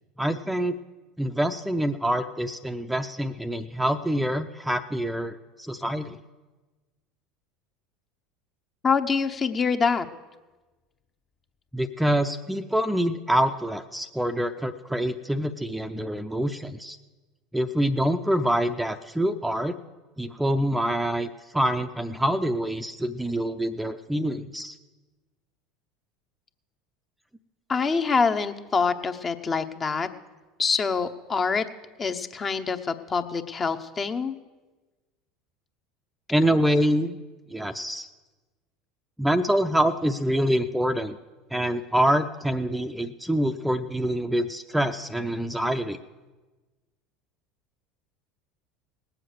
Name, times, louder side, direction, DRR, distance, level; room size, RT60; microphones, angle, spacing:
voice 1, 0.2-0.7 1.2-6.2 11.7-17.0 17.5-19.8 20.2-24.7 36.3-37.2 37.5-38.1 39.2-41.2 41.5-46.0, equal, 5° right, 8 dB, 0.6 m, -26 dB
voice 2, 8.8-10.1 27.7-30.1 30.6-31.6 32.0-34.3, left 5 dB, 30° left, 8 dB, 0.9 m, -25 dB
19.0 x 7.6 x 6.6 m, 1.2 s
hypercardioid pair, 80°, 0 cm